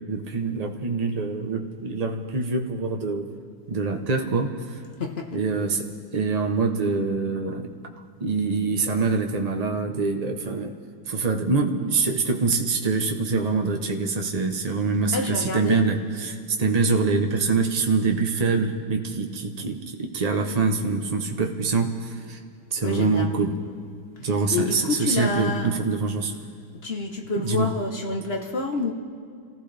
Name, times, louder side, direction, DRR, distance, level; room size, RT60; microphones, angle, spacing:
voice 1, 0.1-3.3 3.7-4.8 5.3-5.9 6.1-7.7 8.2-10.7 11.1-22.4 22.7-23.5 24.2-26.3 27.4-27.7, right 4 dB, 50° right, 3 dB, 0.4 m, -25 dB
voice 2, 15.1-15.8 22.8-23.3 24.5-25.7 26.8-28.9, left 3 dB, 45° left, 3 dB, 0.8 m, -28 dB
27.0 x 15.0 x 3.4 m, 2.3 s
omnidirectional pair, 2.4 m